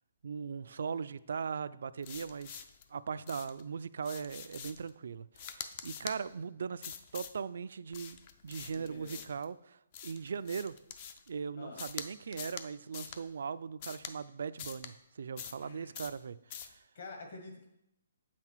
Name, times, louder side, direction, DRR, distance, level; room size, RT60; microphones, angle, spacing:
voice 1, 0.2-2.6 2.9-10.7 11.3-16.8, right 6 dB, 60° right, 16 dB, 0.3 m, -39 dB
sound 1, 2.0-2.8 3.3-3.6 4.0-4.9 5.3-6.2 6.8-7.4 7.9-9.4 9.9-11.3 11.8-12.1 12.3-12.7 12.9-13.2 13.8-14.1 14.6-14.9 15.4-15.7 15.9-16.2 16.5-16.8, left 8 dB, 25° left, 0.4 m, -45 dB
voice 2, 8.7-9.2 11.6-11.8 15.6-15.9 16.9-17.7, left 3 dB, 55° left, 3 dB, 1.7 m, -48 dB
7.4 x 5.8 x 4.6 m, 0.83 s
hypercardioid pair, 170°, 0 cm